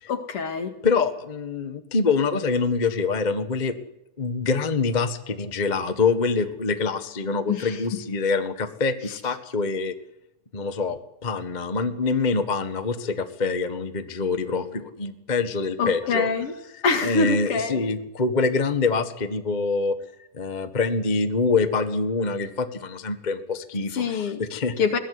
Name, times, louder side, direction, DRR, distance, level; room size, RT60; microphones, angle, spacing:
voice 1, 0.1-0.7 7.5-8.0 15.8-16.5 16.8-17.8 23.9-24.4 24.8-25.0, left 4 dB, 50° left, 7 dB, 2.7 m, -25 dB
voice 2, 0.8-3.7 4.2-9.9 10.5-16.3 17.0-20.0 20.3-24.7, left 4 dB, 30° left, 9 dB, 0.7 m, -25 dB
21.5 x 17.5 x 9.7 m, 0.86 s
omnidirectional pair, 3.5 m